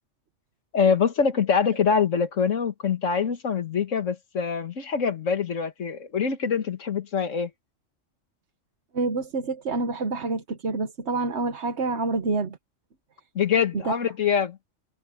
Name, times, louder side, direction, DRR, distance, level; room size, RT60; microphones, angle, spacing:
voice 1, 0.7-7.5 13.4-14.6, left 6 dB, 85° left, 1.9 m, -24 dB
voice 2, 8.9-12.6 13.8-14.0, right 3 dB, 60° right, 1.4 m, -27 dB
omnidirectional pair, 1.3 m